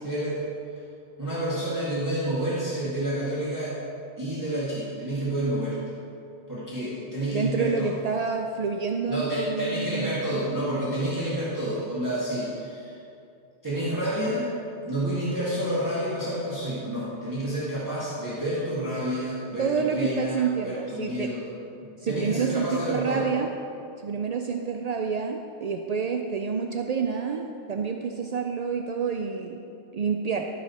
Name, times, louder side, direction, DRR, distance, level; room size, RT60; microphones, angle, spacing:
voice 1, 0.0-0.4 1.2-3.7 4.2-5.8 6.5-7.9 9.1-13.0 13.6-14.5 14.9-21.4 22.1-23.3, right 1 dB, 15° right, -9 dB, 1.8 m, -29 dB
voice 2, 7.3-10.5 19.6-21.3 22.0-23.5 24.0-29.6 29.9-30.5, right 5 dB, 70° right, 3 dB, 0.3 m, -28 dB
13.5 x 5.6 x 4.2 m, 2.6 s
omnidirectional pair, 1.2 m